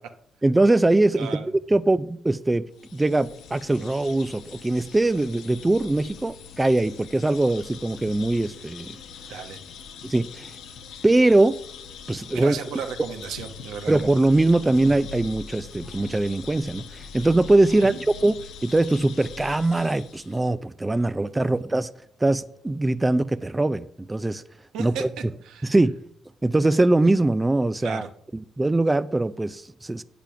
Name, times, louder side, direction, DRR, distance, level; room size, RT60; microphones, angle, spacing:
voice 1, 0.4-1.3 1.7-2.7 2.9-9.0 10.0-10.5 11.0-11.6 12.1-12.6 13.9-18.4 18.6-21.9 22.2-24.4 24.8-25.1 25.6-25.9 26.4-28.0 28.3-30.0, right 2 dB, 15° right, 0.4 m, -22 dB
voice 2, 1.1-1.5 9.3-9.6 12.3-13.9 17.7-18.0 21.4-21.5 24.7-25.0 25.4-25.7 27.8-28.1, right 7 dB, 85° right, 1.1 m, -34 dB
sound 1, 2.7-20.5, left 6 dB, 85° left, 1.0 m, -42 dB
9.0 x 6.9 x 5.8 m
cardioid pair, 90°, 0 cm